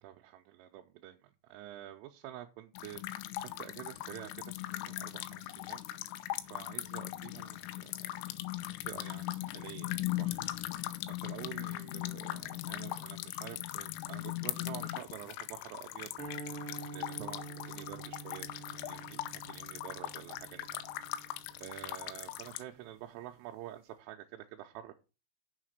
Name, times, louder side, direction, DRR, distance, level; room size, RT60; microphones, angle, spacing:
voice 1, 0.0-5.8 6.5-8.3 8.6-10.5 11.1-16.1 16.9-20.8 21.6-24.9, right 13 dB, 80° right, 3.1 m, -48 dB
sound 1, 2.8-22.6, left 15 dB, 85° left, 3.5 m, -40 dB
sound 2, 16.2-22.5, right 3 dB, 55° right, 1.4 m, -47 dB
7.4 x 6.8 x 6.4 m
omnidirectional pair, 6.0 m